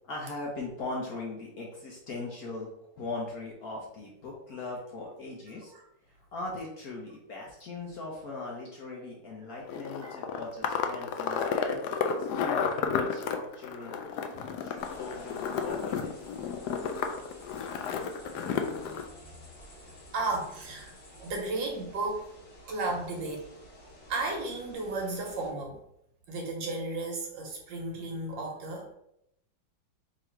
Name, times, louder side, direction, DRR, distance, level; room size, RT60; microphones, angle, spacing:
voice 1, 0.0-2.7 2.9-5.7 6.2-14.0 14.6-16.2, left 3 dB, 60° left, -2 dB, 1.1 m, -40 dB
sound 1, 9.7-19.0, left 6 dB, 80° left, 0.9 m, -32 dB
sound 2, 14.8-25.5, equal, 35° left, 1.5 m, -52 dB
voice 2, 16.5-16.8 18.2-19.4 20.1-22.3 22.6-23.4 24.1-25.8 26.3-29.0, right 2 dB, 65° right, 0 dB, 1.6 m, -35 dB
3.7 x 3.0 x 4.5 m, 0.77 s
omnidirectional pair, 2.2 m